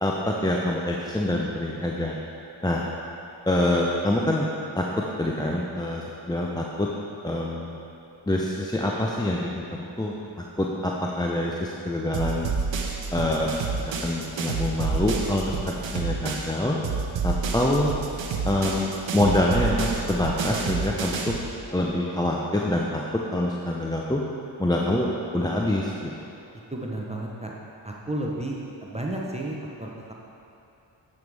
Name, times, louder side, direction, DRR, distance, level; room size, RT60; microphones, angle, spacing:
voice 1, 0.0-2.1 2.6-2.8 3.5-4.5 4.8-4.9 5.2-6.9 7.2-7.8 8.3-12.5 13.1-13.5 13.8-16.8 17.2-17.9 18.4-21.4 21.7-23.0 23.3-24.2 24.6-25.1 25.3-26.1, left 1 dB, 10° left, -2 dB, 0.6 m, -25 dB
sound 1, 12.1-16.6 16.8-21.5, right 4 dB, 65° right, 0.9 m, -29 dB
voice 2, 26.7-27.5 27.8-30.1, right 1 dB, 15° right, -3 dB, 1.0 m, -32 dB
9.1 x 5.4 x 3.5 m, 2.7 s
supercardioid pair, 40°, 49 cm